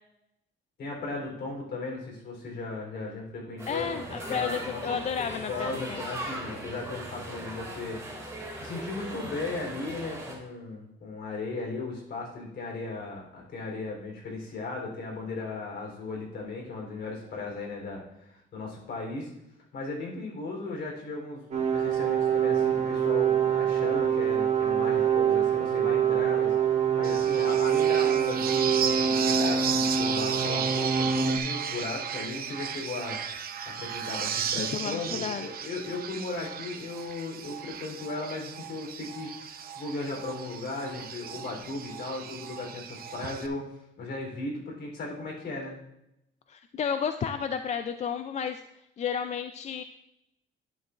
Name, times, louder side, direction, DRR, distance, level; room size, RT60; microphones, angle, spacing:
voice 1, 0.8-8.0 8.6-19.3 19.7-33.2 33.8-43.6 44.0-45.8, left 3 dB, 55° left, -1 dB, 3.5 m, -36 dB
sound 1, 3.6-10.3, right 1 dB, 15° right, 2.3 m, -39 dB
voice 2, 3.7-6.0 34.6-35.5 46.5-48.6 49.0-49.8, left 7 dB, 35° left, 8 dB, 0.4 m, -32 dB
sound 2, 21.5-31.4, right 8 dB, 35° right, 1.2 m, -25 dB
sound 3, 27.0-43.5, right 8 dB, 50° right, 0.7 m, -35 dB
11.0 x 9.7 x 2.5 m, 0.84 s
cardioid pair, 155°, 20 cm